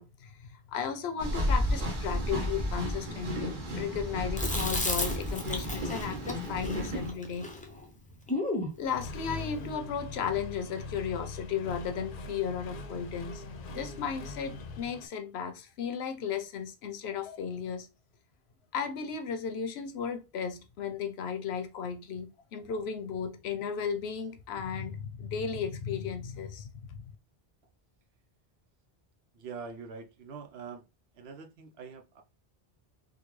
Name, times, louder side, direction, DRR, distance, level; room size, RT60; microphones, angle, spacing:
voice 1, 0.0-7.5 8.8-13.4 13.7-17.9 18.7-27.0, left 7 dB, 90° left, 0.9 m, -35 dB
sound 1, 1.2-7.1, equal, 55° right, 1.1 m, -32 dB
Chewing mastication, 4.4-8.8, left 1 dB, 10° left, 0.4 m, -34 dB
Accelerating revving vroom, 8.8-15.1, left 3 dB, 65° left, 0.7 m, -42 dB
voice 2, 29.3-30.8 31.1-32.2, right 5 dB, 85° right, 0.9 m, -44 dB
3.8 x 2.3 x 3.0 m
omnidirectional pair, 1.0 m